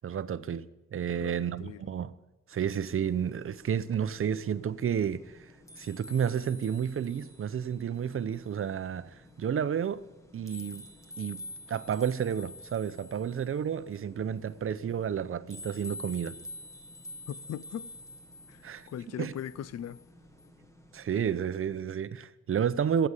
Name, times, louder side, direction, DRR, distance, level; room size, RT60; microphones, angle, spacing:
voice 1, 0.0-0.7 0.9-2.1 2.5-5.5 5.8-10.0 10.3-10.8 11.2-11.4 11.7-16.4 18.6-18.9 19.2-19.3 20.9-23.1, right 8 dB, 50° right, 0.7 m, -31 dB
voice 2, 1.1-1.9 17.3-17.9 18.5-20.0, left 10 dB, 60° left, 0.5 m, -40 dB
sound 1, 2.5-21.8, left 1 dB, 10° left, 1.3 m, -49 dB
15.0 x 7.9 x 7.1 m
cardioid pair, 105°, 29 cm